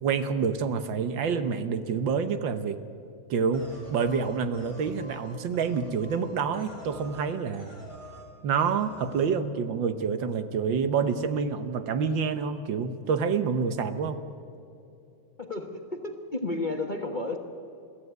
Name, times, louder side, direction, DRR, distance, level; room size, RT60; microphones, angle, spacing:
voice 1, 0.0-2.8 3.3-7.7 8.4-14.2, right 6 dB, 70° right, 10 dB, 1.7 m, -27 dB
sound 1, 3.5-7.3 7.5-8.3 8.5-9.3, equal, 15° right, 3.7 m, -46 dB
voice 2, 15.4-17.4, left 2 dB, 30° left, 4 dB, 1.1 m, -32 dB
22.5 x 14.5 x 9.3 m, 2.8 s
omnidirectional pair, 2.2 m